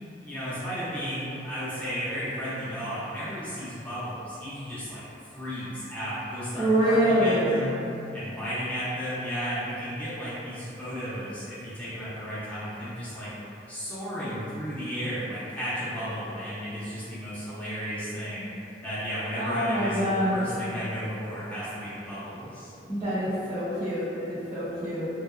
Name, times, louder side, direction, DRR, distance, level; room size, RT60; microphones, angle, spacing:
voice 1, 0.2-5.0 5.3-7.9 8.1-13.3 13.7-18.5 18.8-22.7, equal, 10° left, -13 dB, 0.7 m, -33 dB
voice 2, 6.6-7.5 19.4-20.4 22.9-25.1, equal, 25° right, -17 dB, 0.7 m, -25 dB
2.7 x 2.3 x 2.2 m, 2.7 s
head